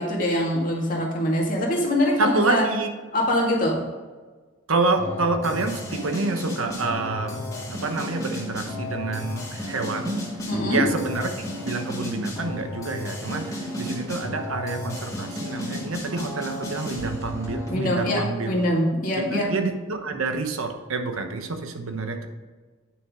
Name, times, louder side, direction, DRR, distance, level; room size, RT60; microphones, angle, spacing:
voice 1, 0.0-2.7 3.1-3.8 10.5-10.8 17.7-19.5, left 1 dB, 40° left, -2 dB, 2.1 m, -23 dB
voice 2, 2.2-2.9 4.7-7.4 7.7-10.2 10.7-11.3 11.7-18.5 19.1-22.3, right 3 dB, 85° right, 6 dB, 1.0 m, -28 dB
sound 1, 5.0-17.9, left 1 dB, 15° left, 2.1 m, -33 dB
9.3 x 6.4 x 3.7 m, 1.4 s
head